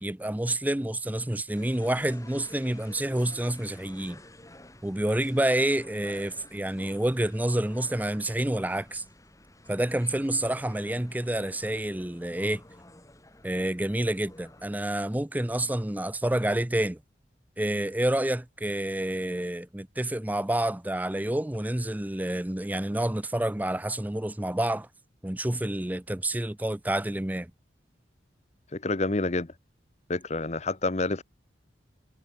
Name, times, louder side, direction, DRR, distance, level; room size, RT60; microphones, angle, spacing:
voice 1, 0.0-4.2 4.8-9.0 9.7-12.6 13.4-17.0 17.6-24.9 25.2-27.5, right 1 dB, 10° right, 0.6 m, -28 dB
sound 1, 1.5-14.7, left 1 dB, 20° left, 7.4 m, -51 dB
voice 2, 28.7-29.5 30.1-31.2, left 2 dB, 40° left, 0.9 m, -28 dB
head